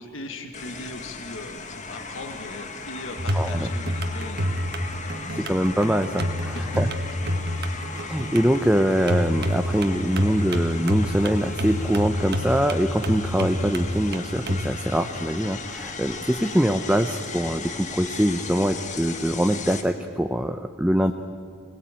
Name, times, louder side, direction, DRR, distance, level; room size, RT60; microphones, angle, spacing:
voice 1, 0.0-5.5 6.4-6.7 7.2-8.3, left 2 dB, 65° left, 5 dB, 1.8 m, -40 dB
sound 1, 0.5-19.8, left 4 dB, 35° left, 1.6 m, -37 dB
sound 2, 3.2-14.7, equal, 50° right, 1.5 m, -28 dB
voice 2, 3.3-3.7 5.4-6.9 7.9-21.1, equal, 5° right, 6 dB, 0.6 m, -23 dB
25.0 x 19.0 x 9.0 m, 2.2 s
head